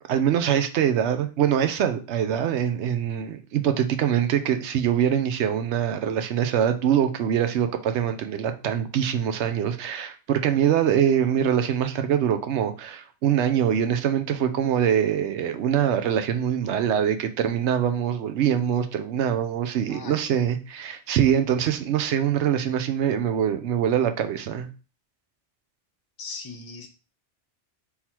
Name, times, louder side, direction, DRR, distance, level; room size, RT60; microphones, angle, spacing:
voice 1, 0.1-24.7, right 9 dB, 80° right, 0.9 m, -24 dB
voice 2, 19.9-20.4 26.2-26.9, left 4 dB, 30° left, 0.4 m, -39 dB
3.8 x 2.9 x 4.3 m
omnidirectional pair, 1.2 m